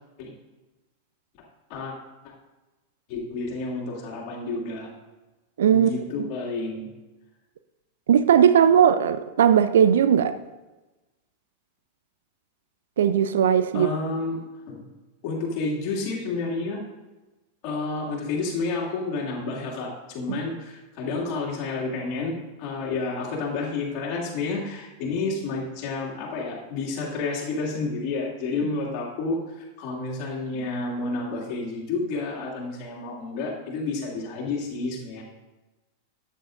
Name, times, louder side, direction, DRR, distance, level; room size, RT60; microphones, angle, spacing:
voice 1, 3.1-4.9 5.7-6.9 13.7-14.4 14.7-14.9 15.2-16.8 17.6-29.4 29.8-35.2, left 3 dB, 40° left, -3 dB, 2.4 m, -30 dB
voice 2, 5.6-5.9 8.1-10.4 13.0-13.9 20.3-20.4, right 8 dB, 60° right, 12 dB, 0.4 m, -18 dB
13.0 x 9.1 x 2.6 m, 1.1 s
figure-of-eight pair, 90°, 0 cm